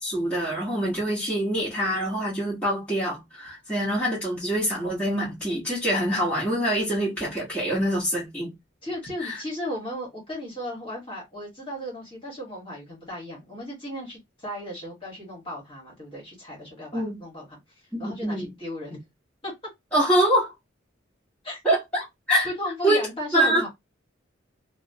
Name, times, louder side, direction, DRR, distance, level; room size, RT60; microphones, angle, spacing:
voice 1, 0.0-8.5 9.2-9.4 16.9-17.2 17.9-18.5 19.9-20.5 21.6-22.5 22.8-23.1 23.3-23.6, right 1 dB, 5° left, 1.2 m, -25 dB
voice 2, 8.8-17.6 18.0-19.0 19.4-19.5 21.4-21.6 22.4-23.7, left 1 dB, 25° left, 1.3 m, -35 dB
2.9 x 2.0 x 2.7 m
head